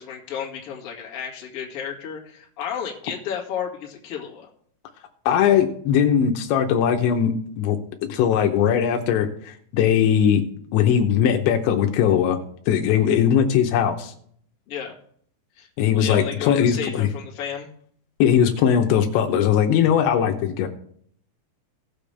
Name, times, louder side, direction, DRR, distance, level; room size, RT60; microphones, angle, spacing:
voice 1, 0.0-4.5 14.7-14.9 15.6-15.7 15.9-17.7, left 8 dB, 45° left, -2 dB, 2.1 m, -32 dB
voice 2, 5.3-7.8 8.1-10.4 10.7-12.4 12.7-14.1 15.8-17.1 18.2-20.7, left 8 dB, 80° left, 5 dB, 3.1 m, -19 dB
18.5 x 6.9 x 3.4 m, 0.63 s
omnidirectional pair, 5.3 m